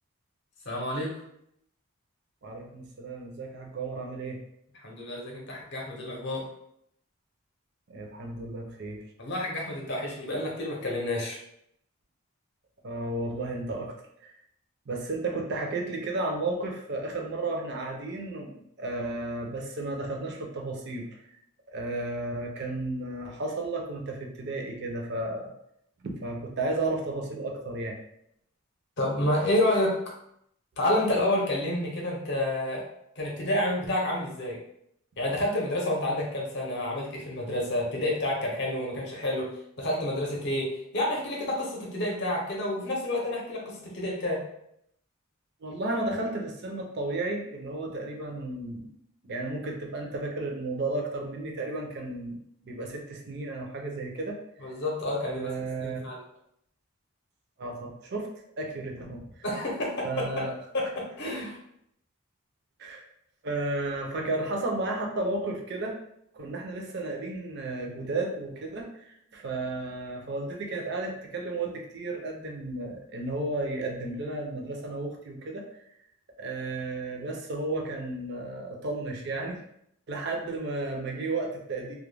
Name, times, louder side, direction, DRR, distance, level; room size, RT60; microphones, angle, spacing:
voice 1, 0.7-1.1 4.8-6.4 9.2-11.4 29.0-30.0 30.8-32.8 33.2-34.6 35.2-39.5 39.8-40.7 40.9-44.4 54.6-55.5 55.8-56.2 59.4-60.5 60.7-61.6, left 1 dB, 50° left, -2 dB, 0.6 m, -29 dB
voice 2, 2.4-4.4 7.9-9.0 12.8-13.9 14.2-14.3 14.9-21.1 21.7-25.5 26.0-28.0 45.6-48.9 49.2-52.4 52.7-54.7 55.2-56.0 57.6-58.3 58.6-59.2 60.0-60.5 62.8-63.0 63.4-66.0 66.3-75.6 76.4-79.6 80.1-82.0, right 2 dB, 50° right, 2 dB, 0.4 m, -33 dB
2.3 x 2.1 x 3.2 m, 0.74 s
head